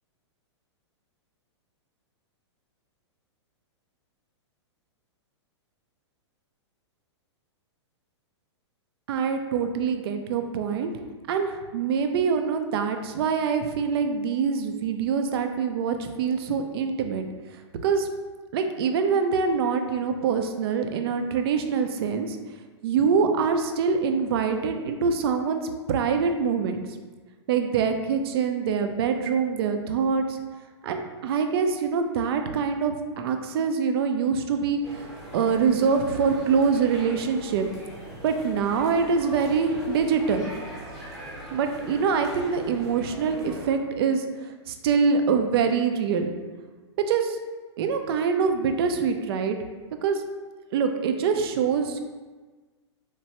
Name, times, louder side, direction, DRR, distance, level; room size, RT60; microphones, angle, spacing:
voice 1, 9.1-10.9 11.3-17.3 17.8-18.1 18.5-22.4 22.8-25.6 25.9-26.8 27.5-30.4 30.8-37.7 38.2-40.5 41.5-44.2 44.7-46.3 47.1-47.4 47.8-49.6 50.0-50.2 50.7-52.0, right 5 dB, 55° right, 6 dB, 0.4 m, -24 dB
sound 1, 34.8-43.7, right 1 dB, ahead, 0.8 m, -41 dB
3.1 x 2.2 x 2.8 m, 1.3 s
hypercardioid pair, 125°, 15 cm